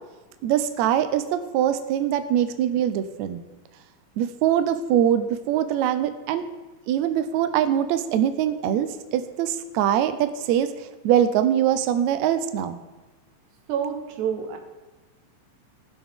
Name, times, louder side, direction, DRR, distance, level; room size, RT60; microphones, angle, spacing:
voice 1, 0.4-3.4 4.2-6.4 6.9-12.8, right 10 dB, 90° right, 10 dB, 1.6 m, -23 dB
voice 2, 13.7-14.6, right 8 dB, 70° right, 4 dB, 2.3 m, -28 dB
16.0 x 6.3 x 3.6 m, 1.2 s
omnidirectional pair, 3.9 m